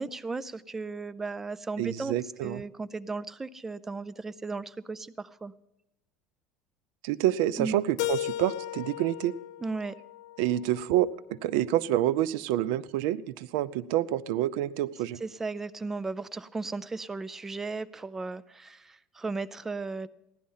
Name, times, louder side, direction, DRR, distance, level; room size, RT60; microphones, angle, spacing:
voice 1, 0.0-2.2 2.4-5.5 7.6-7.8 9.6-9.9 15.2-20.1, right 3 dB, 15° right, 15 dB, 0.5 m, -35 dB
voice 2, 1.8-2.6 7.0-9.3 10.4-15.2, right 13 dB, 80° right, 18 dB, 0.5 m, -28 dB
Keyboard (musical), 8.0-10.9, left 15 dB, 90° left, 0.5 m, -36 dB
16.0 x 11.5 x 5.6 m, 0.89 s
supercardioid pair, 125°, 2 cm